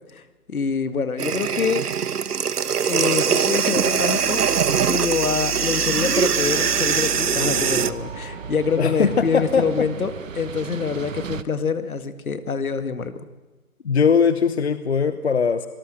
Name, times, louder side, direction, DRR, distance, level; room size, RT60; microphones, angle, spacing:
voice 1, 0.5-1.8 2.9-4.4 4.9-13.3, left 5 dB, 65° left, 11 dB, 1.9 m, -26 dB
sound 1, 1.2-7.9, right 7 dB, 90° right, 1.0 m, -22 dB
sound 2, 3.8-9.7, right 1 dB, 40° right, 5.1 m, -37 dB
sound 3, 6.3-11.4, right 7 dB, 60° right, 1.0 m, -37 dB
voice 2, 8.8-9.9 13.8-15.7, left 6 dB, 45° left, 12 dB, 0.9 m, -20 dB
25.0 x 19.0 x 6.4 m, 1.2 s
hypercardioid pair, 165°, 45 cm